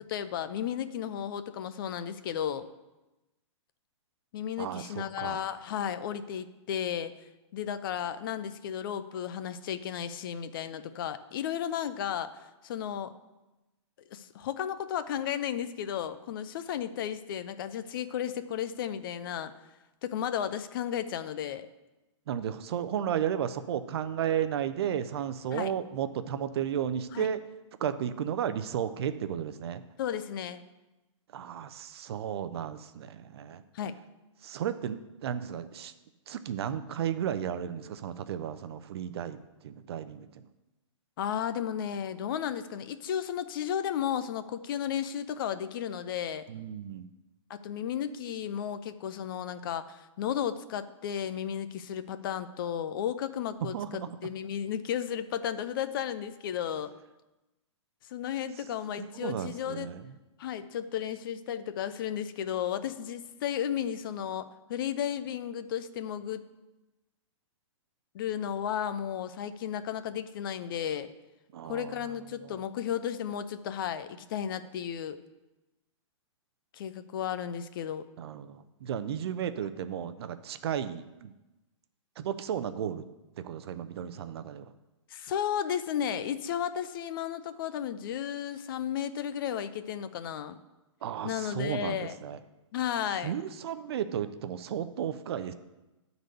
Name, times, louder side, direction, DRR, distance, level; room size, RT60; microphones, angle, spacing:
voice 1, 0.1-2.6 4.3-7.1 7.5-12.3 12.6-13.1 14.1-19.5 20.0-21.7 25.5-25.7 27.1-27.3 30.0-30.6 33.7-34.0 41.2-46.4 47.5-56.9 58.1-59.9 60.4-66.5 68.1-71.1 71.7-75.2 76.7-78.1 85.1-90.5 91.2-92.2 92.7-93.3, left 9 dB, 45° left, 12 dB, 0.5 m, -34 dB
voice 2, 4.6-5.5 22.3-27.4 27.8-29.8 31.3-33.6 34.4-35.9 36.3-39.4 39.6-40.4 46.5-47.1 53.7-54.1 59.0-60.1 71.5-72.0 78.2-81.3 82.2-83.0 83.4-84.7 91.0-92.4 93.2-95.5, right 9 dB, 55° right, 12 dB, 0.6 m, -34 dB
10.5 x 4.0 x 6.7 m, 1.0 s
hypercardioid pair, 155°, 16 cm